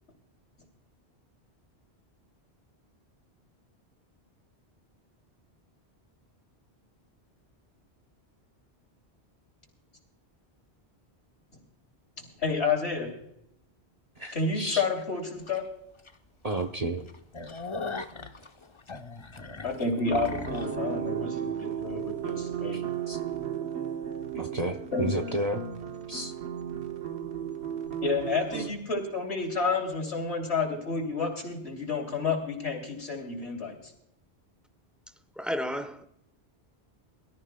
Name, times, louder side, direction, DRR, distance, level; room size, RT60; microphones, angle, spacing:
voice 1, 12.2-13.1 14.3-15.6 19.6-22.8 24.9-25.2 28.0-33.8, left 4 dB, 75° left, 3.4 m, -30 dB
voice 2, 14.2-14.8 16.4-17.1 22.7-23.2 24.3-25.6 26.1-26.3, right 2 dB, 40° right, 0.9 m, -32 dB
sound 1, 15.5-15.6 16.1-16.2 16.5-16.6 17.0-20.7, left 3 dB, 30° left, 0.8 m, -39 dB
sound 2, 20.0-28.7, right 8 dB, 80° right, 1.5 m, -34 dB
voice 3, 35.4-36.1, equal, ahead, 0.8 m, -32 dB
23.5 x 13.5 x 2.2 m
omnidirectional pair, 1.1 m